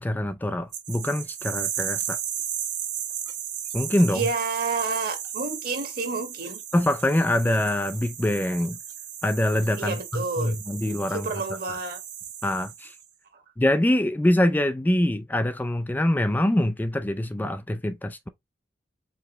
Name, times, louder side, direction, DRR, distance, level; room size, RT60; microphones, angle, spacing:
voice 1, 0.0-2.2 3.7-4.3 6.7-8.8 9.2-11.3 11.7-11.8 12.4-13.0 13.6-18.3, left 1 dB, 10° left, 0.3 m, -24 dB
sound 1, 0.7-13.0, right 10 dB, 75° right, 1.5 m, -35 dB
voice 2, 4.1-6.6 9.8-10.6 11.1-12.0 13.3-13.4, right 4 dB, 55° right, 1.7 m, -29 dB
4.8 x 3.4 x 3.1 m
head